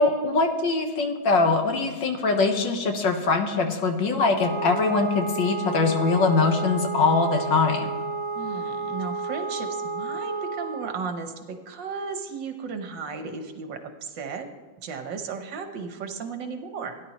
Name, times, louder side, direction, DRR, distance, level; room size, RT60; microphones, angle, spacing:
voice 1, 0.0-7.9, left 4 dB, 75° left, 4 dB, 1.9 m, -22 dB
Wind instrument woodwind instrument, 4.3-11.0, right 3 dB, 15° right, 2.7 m, -31 dB
voice 2, 8.3-14.5 14.8-17.0, right 5 dB, 70° right, 6 dB, 1.7 m, -35 dB
17.0 x 10.5 x 3.0 m, 1.5 s
omnidirectional pair, 2.1 m